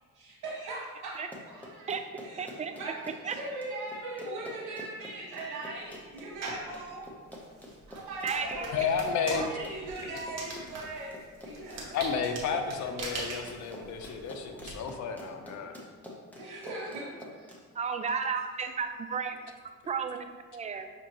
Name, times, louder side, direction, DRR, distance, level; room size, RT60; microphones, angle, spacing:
voice 1, 0.1-1.9 2.2-7.1 7.9-8.8 9.2-11.2 11.4-12.0 16.4-17.5, right 2 dB, 90° right, -7 dB, 1.1 m, -40 dB
Run, 1.1-17.6, left 1 dB, 5° left, 0.8 m, -47 dB
voice 2, 2.4-2.7 3.2-3.4 8.2-8.7 17.8-19.4 19.9-20.9, right 6 dB, 25° right, 8 dB, 0.3 m, -33 dB
sound 1, 6.4-6.7 7.3-14.7, right 2 dB, 60° right, 1.1 m, -41 dB
voice 3, 8.7-9.5 11.9-15.7, left 6 dB, 70° left, 5 dB, 0.6 m, -32 dB
6.1 x 2.9 x 2.9 m, 1.4 s
cardioid pair, 90°, 30 cm